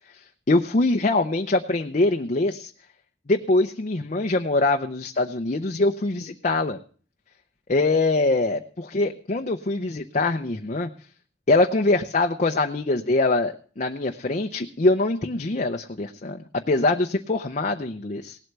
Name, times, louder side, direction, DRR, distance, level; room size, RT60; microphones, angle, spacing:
voice 1, 0.1-2.7 3.3-6.8 7.7-10.9 11.5-18.4, left 2 dB, 45° left, 4 dB, 0.7 m, -23 dB
18.0 x 7.9 x 6.7 m, 0.44 s
head